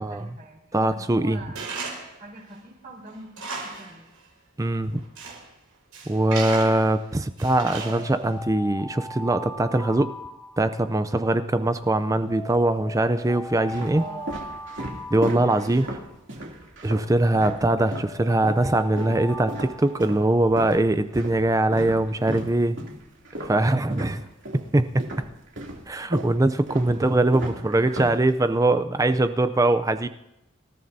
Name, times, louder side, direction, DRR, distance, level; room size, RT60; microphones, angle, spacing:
voice 1, 0.0-1.7 2.2-4.1 13.9-14.6 15.3-15.6 16.9-17.1 17.4-17.5 27.4-28.0, right 2 dB, 40° right, -10 dB, 4.5 m, -44 dB
voice 2, 0.7-1.4 4.6-5.0 6.1-10.1 10.6-14.0 15.1-15.9 16.8-22.8 23.4-24.2 24.7-25.0 25.9-30.1, right 2 dB, 15° right, 11 dB, 0.4 m, -22 dB
Tools, 1.6-2.2 2.6-2.7 3.1-4.0 4.2-4.3 4.9-5.5 5.9-6.9 7.4-8.3, right 4 dB, 85° right, 4.9 m, -35 dB
Alarm, 7.8-11.1 12.3-16.1 17.3-20.5, left 1 dB, 10° left, 1.6 m, -39 dB
sound 1, 11.6-12.3 13.0-18.2 18.4-24.7 25.0-28.7, right 1 dB, 60° right, 2.7 m, -36 dB
26.0 x 14.0 x 2.7 m, 0.88 s
head